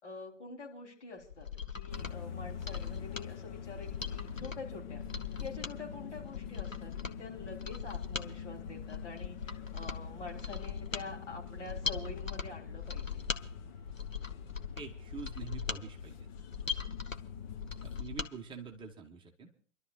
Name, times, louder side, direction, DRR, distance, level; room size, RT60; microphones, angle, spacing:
voice 1, 0.0-5.0 5.4-13.3, left 3 dB, 65° left, -1 dB, 4.1 m, -46 dB
Mechanisms, 1.2-18.3 18.7-18.8, left 6 dB, 90° left, 1.2 m, -40 dB
sound 1, 1.9-18.0, left 7 dB, 35° left, 1.1 m, -45 dB
voice 2, 14.8-16.3 17.8-19.6, right 5 dB, 15° right, 2 dB, 1.4 m, -46 dB
29.0 x 12.5 x 2.5 m, 0.41 s
figure-of-eight pair, 115°, 38 cm